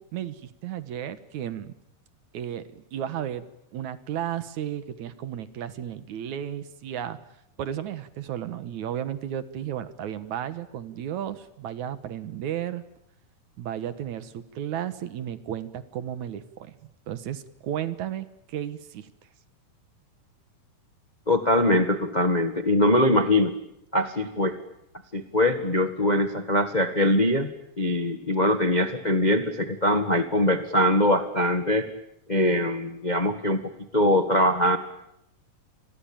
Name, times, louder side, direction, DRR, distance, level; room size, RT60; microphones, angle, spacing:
voice 1, 0.0-1.7 2.3-3.4 3.7-7.2 7.6-12.8 13.6-16.8 17.1-19.1, right 10 dB, 65° right, 13 dB, 2.5 m, -33 dB
voice 2, 21.3-23.5 23.9-24.5 25.1-27.5 27.8-31.9 32.3-34.8, left 1 dB, 45° left, 9 dB, 0.5 m, -22 dB
29.0 x 22.0 x 8.8 m, 0.81 s
omnidirectional pair, 3.9 m